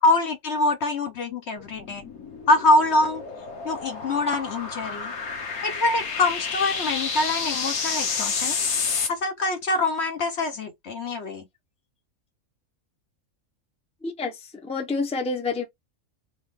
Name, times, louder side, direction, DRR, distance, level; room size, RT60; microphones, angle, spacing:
voice 1, 0.0-2.0 2.5-3.2 3.6-5.1 5.6-8.6 9.1-11.4, left 2 dB, 55° left, 1.0 m, -24 dB
sound 1, 1.6-9.1, left 5 dB, 90° left, 1.5 m, -30 dB
voice 2, 14.0-14.4 14.6-15.7, left 3 dB, 5° left, 0.7 m, -28 dB
3.7 x 3.0 x 3.5 m
omnidirectional pair, 1.5 m